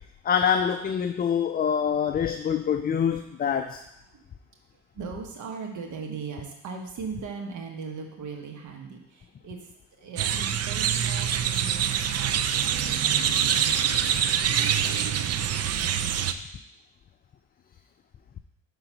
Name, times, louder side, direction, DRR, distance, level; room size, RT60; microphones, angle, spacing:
voice 1, 0.2-3.8, left 7 dB, 30° left, 7 dB, 0.4 m, -25 dB
voice 2, 4.9-9.6 10.0-11.8 12.2-13.4, right 5 dB, 75° right, 2 dB, 1.3 m, -39 dB
sound 1, 10.2-16.3, right 9 dB, 55° right, 0.5 m, -25 dB
5.6 x 3.8 x 5.9 m, 0.82 s
cardioid pair, 90°, 30 cm